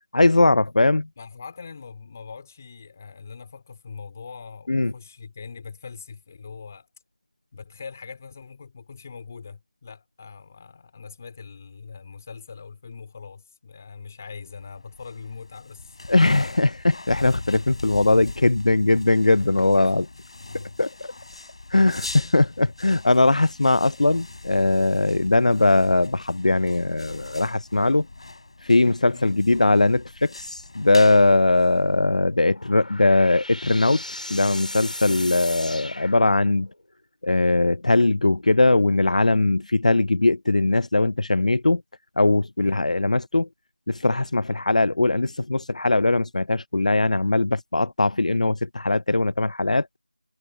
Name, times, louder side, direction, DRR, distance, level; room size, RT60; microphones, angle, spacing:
voice 1, 0.1-1.1 4.7-4.9 16.1-20.1 20.8-21.1 21.7-28.1 28.6-34.0 34.3-36.7 37.2-41.8 42.2-43.5 43.9-49.9, left 2 dB, 60° left, 0.4 m, -20 dB
voice 2, 1.2-6.9 7.5-16.0 19.9-20.0 29.1-29.4 35.0-35.3 42.6-42.9, left 5 dB, 20° left, 4.4 m, -42 dB
sound 1, 14.5-32.3, left 2 dB, 45° left, 7.8 m, -40 dB
sound 2, 32.3-36.8, left 1 dB, 90° left, 4.7 m, -37 dB
figure-of-eight pair, 175°, 4 cm